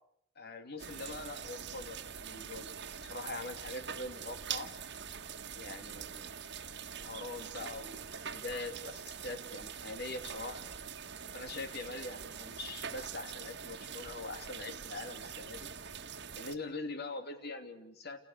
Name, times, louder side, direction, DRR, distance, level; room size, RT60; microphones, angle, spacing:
voice 1, 0.4-2.7 3.0-4.7 5.5-6.3 6.9-10.7 11.3-15.7 16.4-18.2, left 2 dB, 55° left, 7 dB, 2.8 m, -43 dB
sound 1, 0.8-16.6, right 7 dB, 60° right, 1.7 m, -44 dB
29.5 x 28.5 x 6.8 m, 0.74 s
head